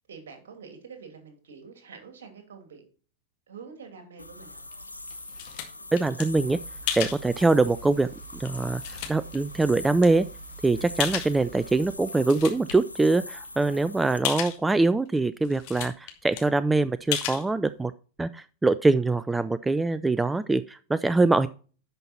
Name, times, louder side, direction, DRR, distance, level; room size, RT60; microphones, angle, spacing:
voice 1, 0.1-2.8 3.5-4.7 10.8-10.9 14.3-14.5 19.7-19.8, right 5 dB, 60° right, 5 dB, 2.6 m, -46 dB
sound 1, 4.2-14.2, left 2 dB, 85° left, 0.7 m, -42 dB
sound 2, 4.7-6.2 6.9-7.2 7.9-8.0 8.5-9.4 10.0-10.1 11.0-11.6 12.0-12.7 13.1-13.2 13.4-13.5 14.2-14.6 15.2-15.3 15.4-16.1 16.4-16.5 17.1-17.4, left 11 dB, 45° left, 1.9 m, -32 dB
voice 2, 5.9-6.6 7.0-10.3 10.6-17.9 18.2-21.5, right 3 dB, 10° right, 16 dB, 0.3 m, -23 dB
sound 3, 6.3-11.9, right 6 dB, 35° right, 4.2 m, -47 dB
10.5 x 5.6 x 4.3 m, 0.39 s
figure-of-eight pair, 90°, 0 cm